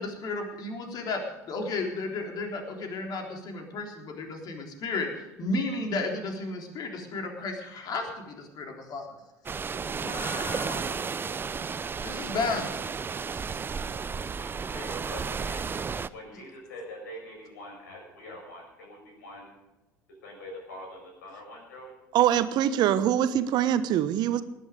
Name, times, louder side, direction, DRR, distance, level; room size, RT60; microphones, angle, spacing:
voice 1, 0.0-5.1 5.4-9.1 9.9-11.0 12.0-12.7 13.3-13.6, left 3 dB, 45° left, 2 dB, 3.6 m, -33 dB
sound 1, 9.5-16.1, right 5 dB, 25° right, 0.6 m, -33 dB
voice 2, 14.4-15.8 16.1-19.6 20.2-21.9, left 1 dB, 75° left, 1 dB, 6.0 m, -44 dB
voice 3, 22.1-24.4, right 11 dB, 50° right, 13 dB, 1.0 m, -23 dB
19.0 x 11.0 x 5.1 m, 1.0 s
figure-of-eight pair, 70°, 9 cm